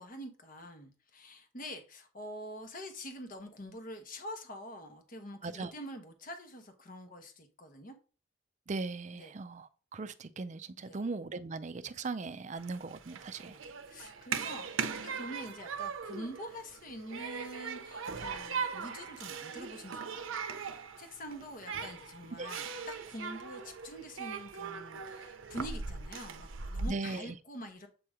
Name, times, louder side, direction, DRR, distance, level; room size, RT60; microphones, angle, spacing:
voice 1, 0.0-8.0 9.2-9.3 10.8-11.0 13.5-13.6 13.9-27.9, equal, 45° left, 1.0 m, -46 dB
voice 2, 8.7-13.6 22.4-22.5 26.9-27.4, right 3 dB, 35° right, 0.4 m, -39 dB
Human group actions, 12.6-26.9, right 5 dB, 85° right, 0.6 m, -40 dB
7.7 x 2.8 x 4.8 m
head